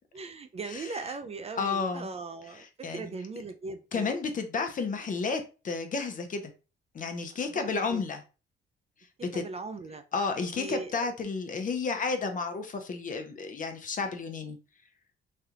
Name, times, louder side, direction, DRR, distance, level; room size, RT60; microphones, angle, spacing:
voice 1, 0.1-4.1 7.5-8.0 9.3-10.0 10.6-11.1, right 3 dB, 30° right, 8 dB, 0.4 m, -39 dB
voice 2, 1.6-2.1 2.6-3.1 3.9-6.5 6.9-8.2 9.3-9.4 10.1-14.6, left 4 dB, 40° left, 7 dB, 0.7 m, -32 dB
3.2 x 2.4 x 2.8 m, 0.33 s
cardioid pair, 90°, 20 cm